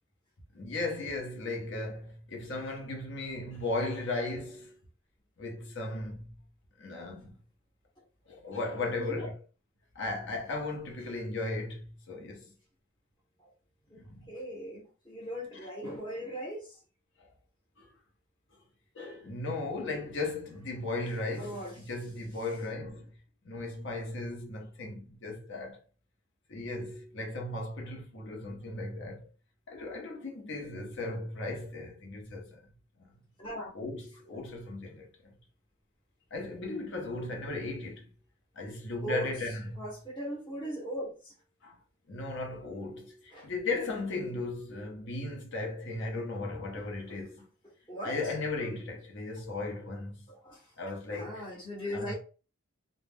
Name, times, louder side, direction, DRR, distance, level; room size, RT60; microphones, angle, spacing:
voice 1, 0.5-4.7 5.4-6.3 6.8-7.3 8.3-9.3 9.9-12.5 13.9-14.3 15.5-15.7 17.2-17.3 17.8-17.9 18.9-23.1 23.4-25.8 26.5-29.3 29.7-32.6 33.0-33.1 33.7-35.3 36.3-38.1 38.6-39.8 41.6-41.8 42.1-47.4 48.0-50.1 50.8-51.4 51.9-52.1, left 2 dB, 55° left, 0.7 m, -36 dB
voice 2, 8.8-9.3 13.4-13.5 13.9-14.0 14.3-16.8 21.4-21.9 33.4-33.7 39.0-39.3 39.8-41.3 43.3-43.5 47.1-47.2 47.9-48.3 50.3-50.7 51.1-52.1, equal, 20° left, 0.8 m, -39 dB
2.3 x 2.1 x 3.4 m
head